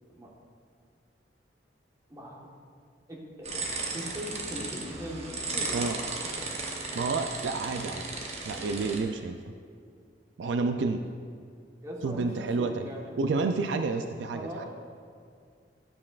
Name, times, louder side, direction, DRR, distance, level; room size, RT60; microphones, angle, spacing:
voice 1, 2.1-2.5 3.1-6.4 11.8-13.2 14.3-14.7, equal, 20° right, -3 dB, 1.3 m, -40 dB
sound 1, 3.4-9.0, right 3 dB, 35° right, 0.9 m, -35 dB
voice 2, 6.9-8.0 8.4-9.4 10.4-11.0 12.0-12.9 13.2-14.7, right 3 dB, 75° right, 7 dB, 0.4 m, -29 dB
12.0 x 7.4 x 2.4 m, 2.2 s
head